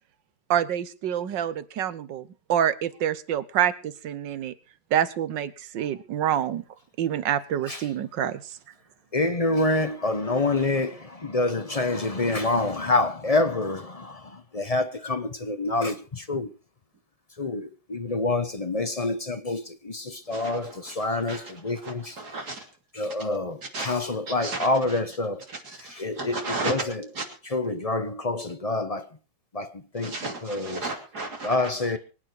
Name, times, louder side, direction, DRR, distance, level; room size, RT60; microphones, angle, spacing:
voice 1, 0.5-4.5 4.9-6.6 7.0-8.6, right 10 dB, 90° right, 1.7 m, -27 dB
voice 2, 9.1-14.2 14.5-16.5 17.4-22.1 23.0-25.4 26.0-26.4 26.6-26.8 27.5-29.0 29.5-29.7 29.9-30.1 30.4-30.8 31.4-32.0, left 2 dB, 30° left, 0.7 m, -27 dB
voice 3, 20.3-22.6 23.6-23.9 24.3-25.0 25.5-26.9 27.1-27.3 30.0-31.7, right 3 dB, 60° right, 3.3 m, -35 dB
24.0 x 9.0 x 4.6 m
omnidirectional pair, 1.9 m